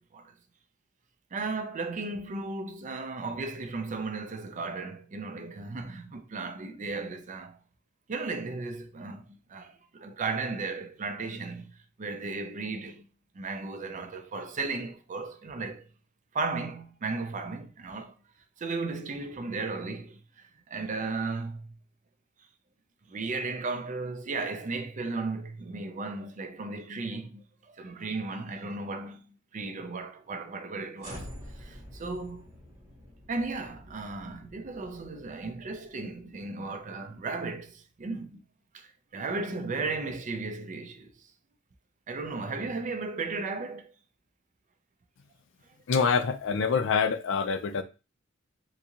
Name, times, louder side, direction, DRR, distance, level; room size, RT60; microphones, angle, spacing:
voice 1, 1.3-7.6 8.1-11.7 12.0-13.1 13.3-15.9 16.3-18.1 18.6-20.2 20.7-21.7 23.1-31.3 31.6-32.5 33.3-38.4 38.7-38.9 39.1-41.1 42.1-43.9, right 3 dB, 40° right, 0.4 m, -35 dB
sound 1, 31.0-37.3, equal, 20° right, 1.2 m, -48 dB
voice 2, 45.9-47.8, left 5 dB, 65° left, 0.4 m, -26 dB
3.7 x 2.6 x 2.8 m
head